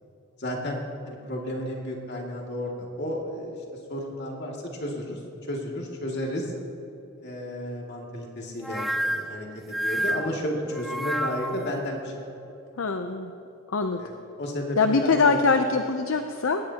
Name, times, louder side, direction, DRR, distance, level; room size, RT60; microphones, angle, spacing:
voice 1, 0.4-0.8 1.1-3.6 3.9-5.2 5.5-6.5 7.2-12.3 12.9-13.0 13.9-15.4, equal, 50° left, -1 dB, 2.3 m, -32 dB
sound 1, 8.6-11.7, equal, ahead, 0.3 m, -29 dB
voice 2, 12.8-13.3 13.7-14.0 14.8-16.6, left 4 dB, 70° left, 7 dB, 0.6 m, -23 dB
19.5 x 17.5 x 2.9 m, 2.8 s
head